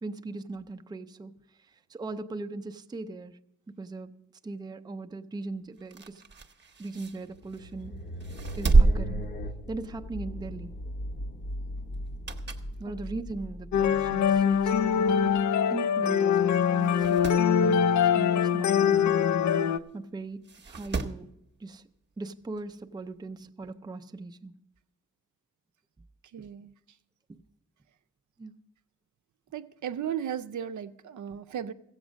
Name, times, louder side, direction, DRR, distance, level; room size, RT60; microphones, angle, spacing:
voice 1, 0.0-1.3 1.7-3.4 3.7-6.2 6.8-8.0 8.6-9.3 9.7-10.7 12.8-17.9 18.1-21.3 21.6-21.8 22.2-24.6 26.4-26.5 27.3-27.4 28.4-28.5, right 3 dB, 15° right, 0.4 m, -39 dB
sound 1, 5.8-7.7 8.2-10.1 10.5-10.7 12.0-12.8 13.2-13.3 14.2-14.3 14.6-14.7 14.8-14.9 15.8-16.0 16.3-16.4 16.8-17.5 19.3-19.4 20.4-21.3 22.6-22.7, right 3 dB, 35° right, 0.8 m, -28 dB
sound 2, 7.0-15.4, left 1 dB, 35° left, 0.7 m, -39 dB
sound 3, 13.7-19.8, left 8 dB, 70° left, 0.5 m, -23 dB
voice 2, 26.3-26.7 29.5-31.7, right 9 dB, 75° right, 0.6 m, -35 dB
15.0 x 8.0 x 6.2 m
wide cardioid pair, 140°, 30 cm